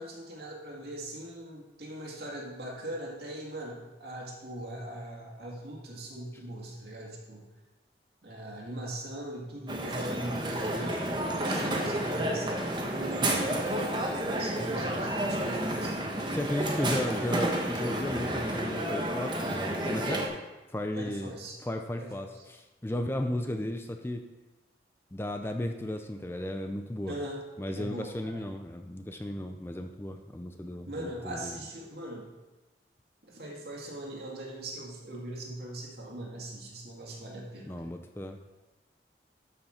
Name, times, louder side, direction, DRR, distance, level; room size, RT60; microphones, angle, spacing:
voice 1, 0.0-7.4 8.2-16.1 21.0-21.6 22.0-22.3 27.1-27.4 27.8-28.4 30.9-32.2 33.2-37.8, right 1 dB, 65° right, -2 dB, 2.2 m, -40 dB
Crowd, 9.7-20.3, right 1 dB, 25° right, 1.0 m, -30 dB
voice 2, 16.3-20.3 20.7-21.3 21.6-24.3 25.1-27.1 27.6-31.6 37.7-38.4, left 1 dB, 15° left, 5 dB, 0.4 m, -35 dB
12.5 x 5.7 x 4.3 m, 1.1 s
head